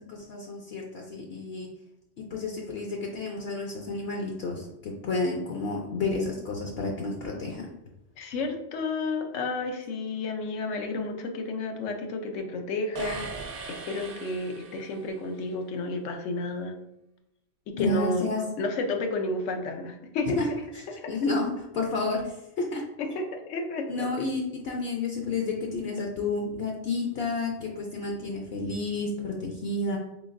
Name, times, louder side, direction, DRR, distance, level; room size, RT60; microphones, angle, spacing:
voice 1, 0.0-1.7 2.2-7.7 17.7-18.4 20.4-20.5 20.7-22.8 23.9-30.0, left 3 dB, 65° left, 0 dB, 0.7 m, -31 dB
voice 2, 8.2-13.3 13.7-16.7 17.7-18.3 18.6-20.4 21.0-21.1 23.0-24.1, left 3 dB, 90° left, 4 dB, 1.0 m, -31 dB
sound 1, 12.9-15.2, right 4 dB, 65° right, 0.8 m, -39 dB
3.8 x 3.4 x 2.5 m, 0.87 s
omnidirectional pair, 1.2 m